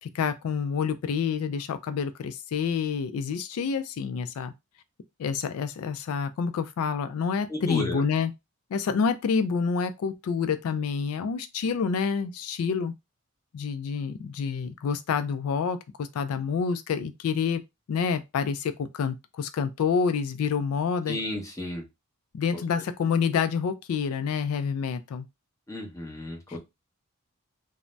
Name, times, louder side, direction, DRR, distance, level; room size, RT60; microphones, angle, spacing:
voice 1, 0.0-4.5 5.2-8.3 8.7-12.9 13.5-17.6 17.9-21.2 22.3-25.3, left 6 dB, 80° left, 0.3 m, -28 dB
voice 2, 7.5-8.0 21.1-21.8 22.5-22.6 25.7-26.6, left 1 dB, 15° left, 0.7 m, -33 dB
2.6 x 2.0 x 3.2 m
head